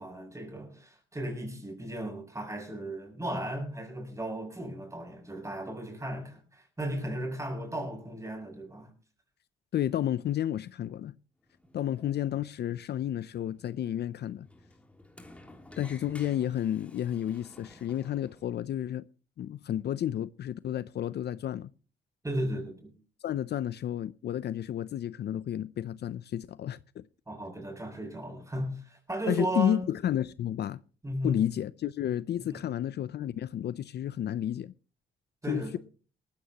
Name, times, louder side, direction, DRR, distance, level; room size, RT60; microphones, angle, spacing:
voice 1, 0.0-8.9 22.2-22.9 27.3-29.9 31.0-31.4 32.4-32.7 35.4-35.8, right 1 dB, 15° right, 6.4 m, -35 dB
voice 2, 9.7-11.1 11.7-14.5 15.8-19.1 19.4-21.7 23.2-27.0 29.3-30.8 31.2-34.7 35.5-35.8, left 11 dB, 55° left, 0.5 m, -31 dB
Sliding door, 11.4-18.5, left 1 dB, 5° left, 3.1 m, -55 dB
19.0 x 14.5 x 2.9 m
cardioid pair, 90°, 20 cm